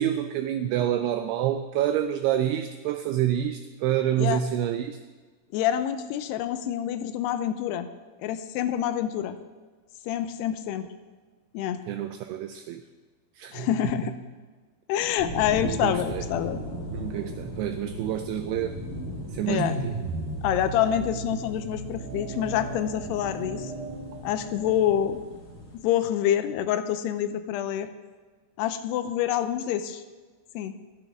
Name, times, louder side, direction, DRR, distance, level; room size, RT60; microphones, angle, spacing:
voice 1, 0.0-5.0 11.9-12.8 13.4-13.7 14.0-14.1 15.6-16.2 16.9-18.8 19.3-19.9, right 11 dB, 80° right, 8 dB, 2.4 m, -28 dB
voice 2, 5.5-7.9 8.2-9.4 10.1-10.9 11.5-11.8 13.5-14.1 14.9-16.6 19.5-19.8 20.4-23.7 24.2-25.2 25.7-27.9 28.6-30.0 30.5-30.7, left 10 dB, 80° left, 10 dB, 2.6 m, -27 dB
sound 1, 15.2-25.8, left 1 dB, 45° left, 2.0 m, -39 dB
sound 2, 18.9-25.2, right 3 dB, 65° right, 2.9 m, -36 dB
27.0 x 9.1 x 3.6 m, 1.4 s
omnidirectional pair, 5.1 m